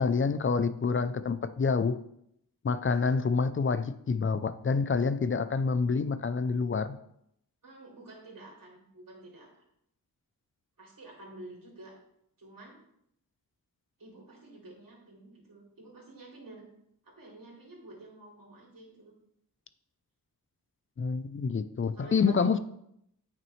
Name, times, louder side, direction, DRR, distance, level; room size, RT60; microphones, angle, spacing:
voice 1, 0.0-2.0 2.6-7.0 21.0-22.6, left 5 dB, 35° left, 12 dB, 0.5 m, -27 dB
voice 2, 7.6-9.5 10.8-12.0 12.4-12.8 14.0-16.6 17.0-19.1 21.9-22.6, right 2 dB, 65° right, -3 dB, 3.0 m, -50 dB
9.1 x 6.0 x 3.1 m, 0.74 s
wide cardioid pair, 85°, 36 cm